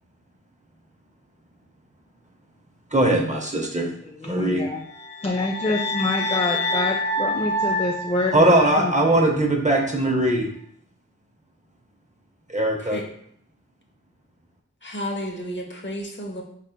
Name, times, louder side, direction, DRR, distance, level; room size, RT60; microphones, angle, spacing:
voice 1, 2.9-3.9 4.3-4.6 8.3-10.5 12.5-13.0, right 1 dB, 25° right, 1 dB, 0.7 m, -20 dB
voice 2, 4.0-4.9 5.2-8.9, left 2 dB, 20° left, 1 dB, 0.4 m, -27 dB
sound 1, 4.9-9.1, left 1 dB, 60° left, 1.2 m, -27 dB
voice 3, 14.8-16.4, equal, 35° left, 0 dB, 0.9 m, -32 dB
4.2 x 3.3 x 2.2 m, 0.65 s
cardioid pair, 40°, 31 cm